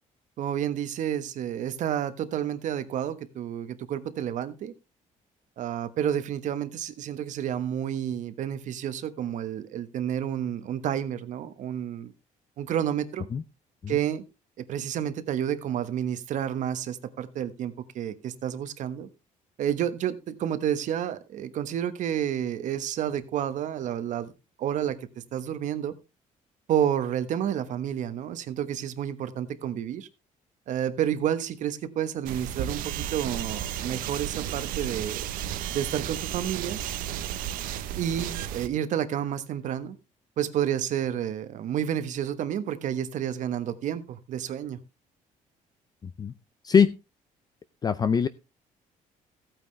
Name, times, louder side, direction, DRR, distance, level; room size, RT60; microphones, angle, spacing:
voice 1, 0.4-4.7 5.6-12.1 12.6-13.3 13.9-14.2 14.6-19.1 19.6-24.3 24.6-25.0 25.3-25.9 26.7-30.1 30.7-35.3 35.7-36.8 38.0-40.0 40.4-44.8, right 10 dB, 60° right, 1.3 m, -30 dB
sound 1, 32.3-38.7, right 10 dB, 80° right, 1.0 m, -33 dB
voice 2, 46.0-46.3 46.6-46.9 47.8-48.3, left 6 dB, 30° left, 0.5 m, -22 dB
15.0 x 9.0 x 3.3 m
cardioid pair, 130°, 14 cm